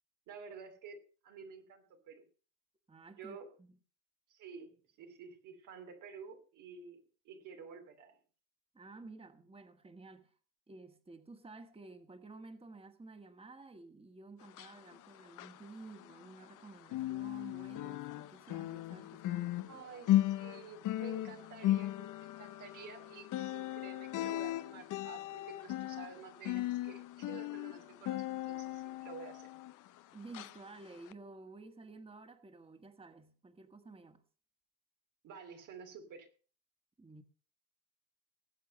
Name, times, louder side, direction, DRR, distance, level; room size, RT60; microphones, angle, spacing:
voice 1, 0.3-2.2 3.2-3.5 4.3-7.0 7.2-8.2 19.7-29.5 35.2-36.3, right 6 dB, 90° right, 2.8 m, -51 dB
voice 2, 2.9-3.7 8.7-10.3 10.7-19.8 30.1-34.2 37.0-37.2, right 3 dB, 20° right, 1.5 m, -52 dB
sound 1, 14.4-16.6 16.8-30.0 30.3-30.6 31.1-31.2, left 14 dB, 85° left, 0.7 m, -37 dB
19.0 x 7.7 x 5.4 m
cardioid pair, 90°, 30 cm